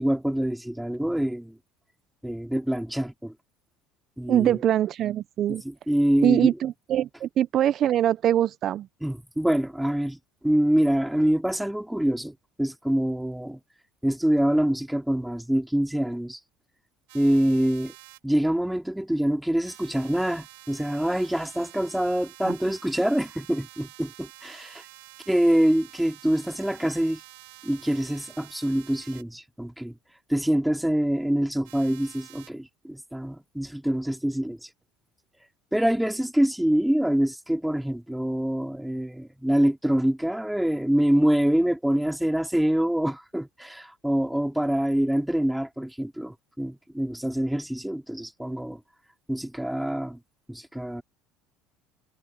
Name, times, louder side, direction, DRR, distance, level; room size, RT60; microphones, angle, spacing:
voice 1, 0.0-1.6 2.2-3.3 4.2-4.6 5.5-6.5 9.0-10.2 10.4-13.6 14.0-16.4 17.1-17.9 18.2-24.8 25.3-27.2 27.6-29.9 30.3-34.6 35.7-48.8 49.3-50.2 50.5-51.0, right 1 dB, 5° right, 2.7 m, -25 dB
voice 2, 4.3-5.6 6.2-8.9 22.4-22.5, right 11 dB, 50° right, 0.4 m, -23 dB
sound 1, 17.1-18.2 19.6-29.2 31.6-32.5, right 24 dB, 90° right, 3.4 m, -49 dB
supercardioid pair, 100°, 0 cm